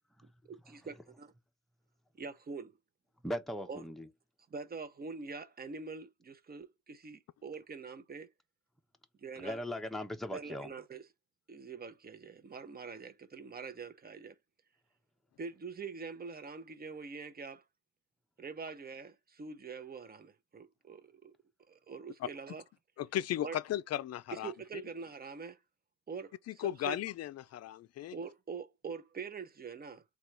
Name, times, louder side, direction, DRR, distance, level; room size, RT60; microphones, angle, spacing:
voice 1, 0.2-1.3 2.1-2.7 3.7-3.8 4.5-8.3 9.2-9.6 10.3-11.1 11.5-14.4 15.4-17.6 18.4-21.4 21.7-22.6 23.4-23.6 24.3-25.6 26.1-27.0 28.1-30.0, right 5 dB, 30° right, 0.8 m, -44 dB
voice 2, 3.2-4.1 9.4-10.7, left 1 dB, ahead, 0.7 m, -38 dB
voice 3, 23.0-24.5 26.5-28.2, left 12 dB, 55° left, 0.5 m, -36 dB
3.8 x 2.5 x 4.4 m
cardioid pair, 90°, 30 cm